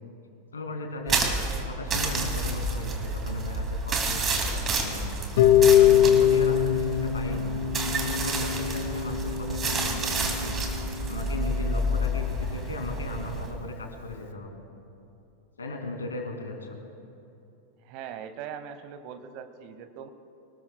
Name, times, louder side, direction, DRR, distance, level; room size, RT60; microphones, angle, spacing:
voice 1, 0.5-1.4 1.6-5.1 5.7-7.5 7.8-10.5 11.1-14.6 15.6-16.8, left 2 dB, 70° left, 3 dB, 2.3 m, -37 dB
sound 1, 1.1-13.5, right 2 dB, 25° right, 2.2 m, -30 dB
Harp, 5.4-11.4, left 10 dB, 50° left, 0.9 m, -23 dB
voice 2, 17.8-20.1, right 8 dB, 45° right, 10 dB, 1.0 m, -41 dB
25.0 x 19.0 x 2.2 m, 2.8 s
figure-of-eight pair, 90°, 0 cm